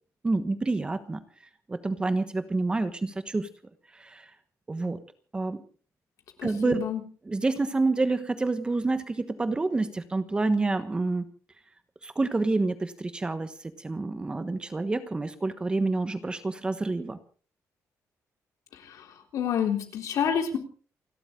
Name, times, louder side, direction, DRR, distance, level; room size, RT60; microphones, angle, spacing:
voice 1, 0.2-1.2 1.7-3.5 4.0-4.2 4.7-5.0 5.3-5.6 6.4-6.9 7.3-11.2 12.0-13.5 13.8-17.2, right 3 dB, 15° right, 11 dB, 1.2 m, -28 dB
voice 2, 6.4-7.0 19.3-20.6, left 8 dB, 65° left, 5 dB, 3.7 m, -28 dB
29.0 x 13.0 x 3.8 m, 0.40 s
cardioid pair, 165°, 6 cm